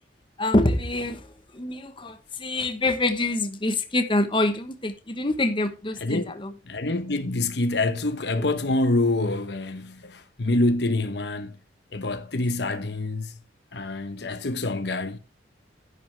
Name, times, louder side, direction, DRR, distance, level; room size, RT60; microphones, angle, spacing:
voice 1, 0.4-1.3 1.5-6.5, left 2 dB, 25° left, 1.1 m, -25 dB
voice 2, 6.0-6.3 6.7-11.6 11.9-13.4 13.7-15.2, left 2 dB, 60° left, 1.0 m, -26 dB
10.5 x 9.6 x 3.3 m
head